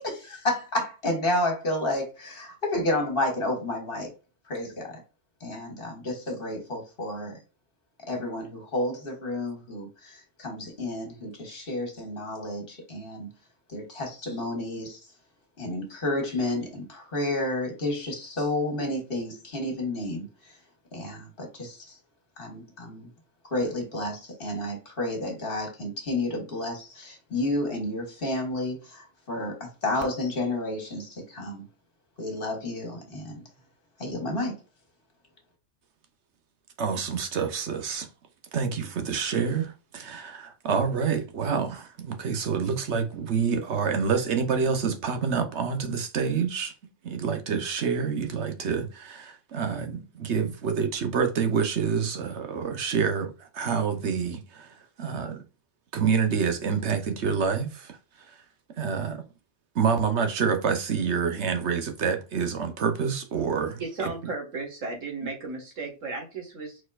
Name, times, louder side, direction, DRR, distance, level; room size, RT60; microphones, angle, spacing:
voice 1, 0.0-4.1 4.5-5.0 5.4-7.4 8.0-13.3 13.7-15.0 15.6-20.5 20.9-22.0 22.4-23.1 23.4-31.6 32.2-33.4 34.0-34.6, left 1 dB, 45° left, 1.9 m, -31 dB
voice 2, 36.8-38.1 38.5-46.7 47.0-55.4 55.9-58.0 58.3-58.4 58.8-59.2 59.7-63.8, right 6 dB, 65° right, 1.1 m, -27 dB
voice 3, 63.8-66.8, right 3 dB, 85° right, 2.0 m, -34 dB
4.8 x 4.2 x 2.4 m
omnidirectional pair, 1.3 m